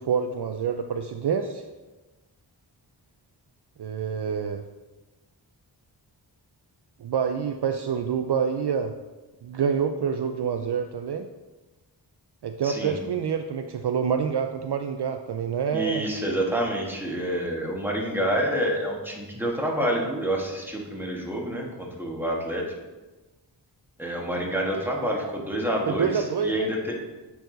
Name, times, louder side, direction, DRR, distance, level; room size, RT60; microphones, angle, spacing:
voice 1, 0.0-1.6 3.8-4.6 7.0-8.9 9.4-11.3 12.4-16.1 25.9-26.7, right 7 dB, 60° right, 7 dB, 0.5 m, -27 dB
voice 2, 12.6-13.0 15.7-22.6 24.0-26.9, right 1 dB, 5° right, -1 dB, 1.6 m, -28 dB
7.7 x 4.7 x 3.9 m, 1.1 s
wide cardioid pair, 55°, 46 cm